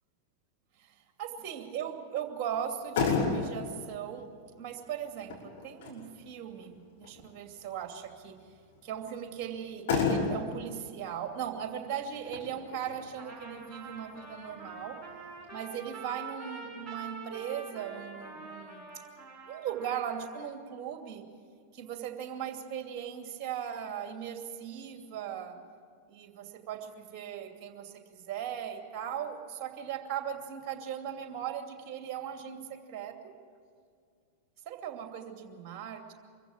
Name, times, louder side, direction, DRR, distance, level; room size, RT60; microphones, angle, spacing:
voice 1, 1.2-4.3 4.6-8.4 8.8-15.0 15.5-18.9 19.4-21.2 21.7-25.6 26.1-33.3 34.7-36.1, right 9 dB, 35° right, 4 dB, 2.7 m, -38 dB
Motor vehicle (road), 2.6-15.5, left 5 dB, 55° left, 5.5 m, -36 dB
Trumpet, 13.2-20.5, right 4 dB, 10° right, 6.4 m, -45 dB
24.5 x 15.0 x 8.7 m, 2.2 s
figure-of-eight pair, 90°, 0 cm